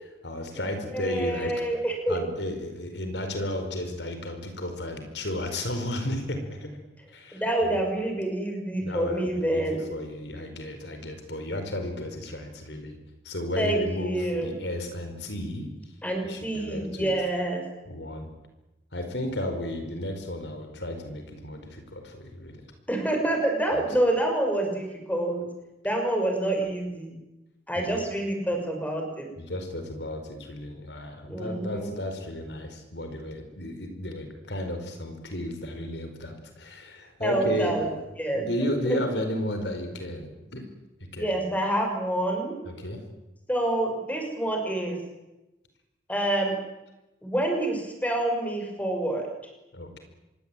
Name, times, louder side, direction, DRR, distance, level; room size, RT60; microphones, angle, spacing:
voice 1, 0.2-1.5 2.1-6.7 7.1-7.8 8.8-13.0 13.2-15.7 16.2-17.1 17.9-18.3 18.9-22.6 23.7-23.9 27.9-28.0 29.4-37.9 38.3-40.7 41.1-41.4 42.7-43.0 49.7-50.0, left 1 dB, 80° left, 6 dB, 4.9 m, -33 dB
voice 2, 0.9-2.2 7.3-9.8 13.6-14.5 16.0-17.6 22.9-25.4 25.8-27.1 27.7-29.3 31.3-31.9 37.2-37.9 38.2-39.0 41.1-42.6 43.5-45.0 46.1-46.6 47.2-49.3, right 1 dB, 10° left, 3 dB, 6.3 m, -27 dB
26.0 x 22.5 x 9.2 m, 1.0 s
head